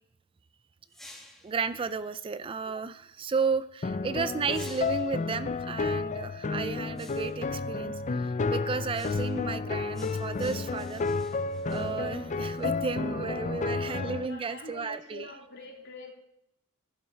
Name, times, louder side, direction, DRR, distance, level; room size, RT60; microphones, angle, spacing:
sound 1, 0.9-1.6 4.5-5.2 7.0-7.5 8.9-9.5 9.9-12.7, left 1 dB, ahead, 1.7 m, -52 dB
voice 1, 1.4-11.0 11.7-15.4, right 5 dB, 25° right, 14 dB, 0.3 m, -33 dB
sound 2, 3.8-14.3, left 4 dB, 35° left, 0.5 m, -31 dB
voice 2, 13.8-16.1, left 2 dB, 60° left, -1 dB, 3.2 m, -44 dB
12.0 x 11.5 x 4.4 m, 0.80 s
head